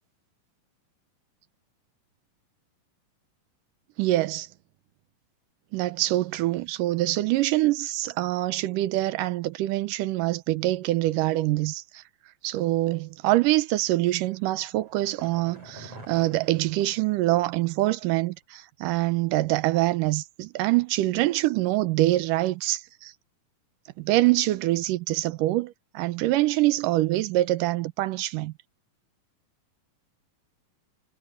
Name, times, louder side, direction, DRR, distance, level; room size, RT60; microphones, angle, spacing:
voice 1, 4.0-4.5 5.7-12.0 12.4-23.1 24.0-28.5, right 17 dB, 80° right, 2.3 m, -25 dB
sound 1, 14.1-17.8 18.1-18.2, right 2 dB, 45° right, 8.6 m, -48 dB
omnidirectional pair, 4.0 m